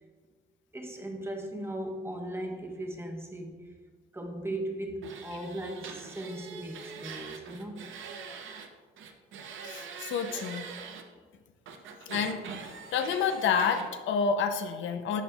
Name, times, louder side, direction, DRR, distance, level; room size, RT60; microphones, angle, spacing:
voice 1, 0.7-3.7 4.1-7.9, right 1 dB, 10° right, 2 dB, 0.9 m, -38 dB
sound 1, 5.0-8.7 9.0-11.0 11.7-13.9, right 6 dB, 75° right, 0.7 m, -43 dB
voice 2, 9.6-10.7 12.1-15.2, left 6 dB, 75° left, 8 dB, 0.5 m, -29 dB
10.5 x 4.3 x 2.2 m, 1.5 s
cardioid pair, 90°, 20 cm